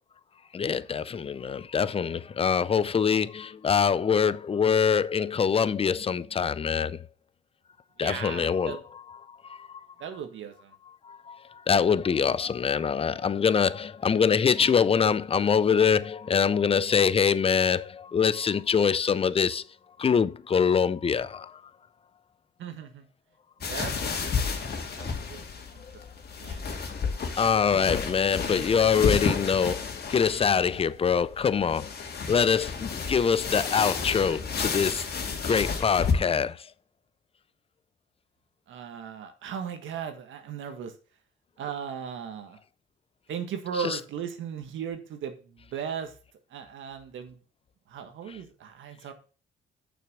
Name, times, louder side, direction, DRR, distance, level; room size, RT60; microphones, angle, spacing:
voice 1, 0.5-7.0 8.0-8.8 9.5-9.7 11.1-11.4 11.7-19.6 20.0-21.5 27.4-31.9 32.3-35.1 35.4-36.6 43.8-44.0, left 6 dB, 30° left, 0.5 m, -24 dB
voice 2, 8.0-8.8 10.0-10.7 22.6-23.1 23.6-24.3 24.6-25.4 25.7-25.8 26.4-26.7 38.7-40.9 41.6-42.6 43.3-46.1 46.5-47.4 47.9-49.1, right 7 dB, 75° right, 1.6 m, -37 dB
sound 1, 23.6-36.1, left 5 dB, 55° left, 2.2 m, -31 dB
6.8 x 6.0 x 6.2 m
cardioid pair, 90°, 20 cm